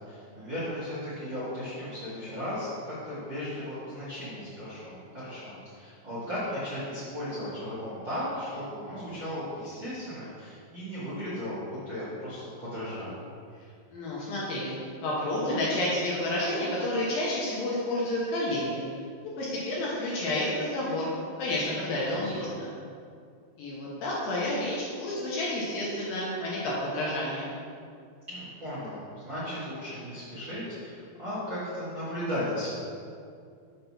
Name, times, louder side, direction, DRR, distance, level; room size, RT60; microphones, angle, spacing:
voice 1, 0.0-13.2 22.0-22.2 28.3-32.7, equal, 50° right, -13 dB, 1.4 m, -36 dB
voice 2, 13.9-18.8 19.4-22.7 23.6-27.5, left 1 dB, 75° left, -5 dB, 2.3 m, -30 dB
6.6 x 4.2 x 5.8 m, 2.3 s
omnidirectional pair, 4.8 m